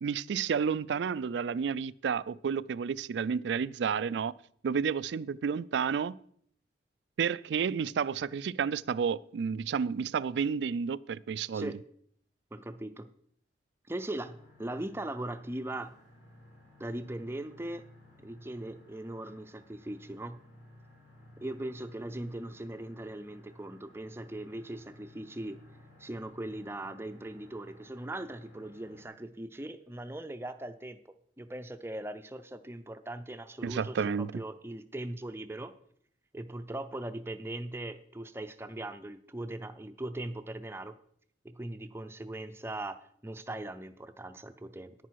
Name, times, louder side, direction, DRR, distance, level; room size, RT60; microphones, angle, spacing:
voice 1, 0.0-4.3 4.6-6.2 7.2-11.7 33.6-34.3, right 6 dB, 75° right, 0.3 m, -31 dB
voice 2, 12.5-13.1 13.9-15.9 16.8-17.8 18.2-20.4 21.4-25.6 26.0-31.0 31.4-35.7 36.3-40.9 41.4-44.9, right 1 dB, 15° right, 0.5 m, -40 dB
sound 1, 14.2-29.1, left 1 dB, 75° left, 5.1 m, -56 dB
10.0 x 10.0 x 4.7 m
head